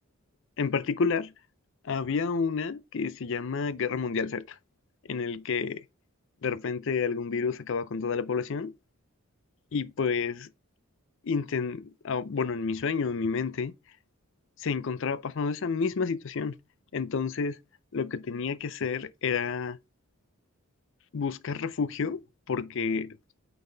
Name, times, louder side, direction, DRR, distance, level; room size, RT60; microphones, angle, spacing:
voice 1, 0.6-1.3 1.8-4.4 5.1-5.8 6.4-8.7 9.7-10.5 11.2-13.7 14.6-16.6 16.9-17.6 17.9-19.8 21.1-22.2 22.5-23.2, left 5 dB, 55° left, 0.5 m, -30 dB
8.8 x 4.0 x 3.9 m
head